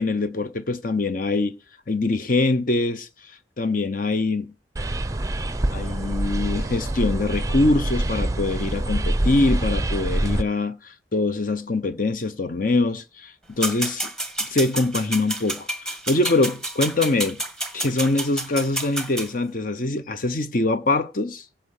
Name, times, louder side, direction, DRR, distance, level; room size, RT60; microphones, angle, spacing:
voice 1, 0.0-1.5 1.9-3.1 3.6-4.5 5.7-14.1 14.5-17.4 17.7-21.4, left 2 dB, 45° left, 0.9 m, -23 dB
sound 1, 4.8-10.4, right 1 dB, 20° right, 0.6 m, -25 dB
sound 2, 13.6-19.3, right 1 dB, 5° left, 1.7 m, -29 dB
15.5 x 5.7 x 6.6 m
head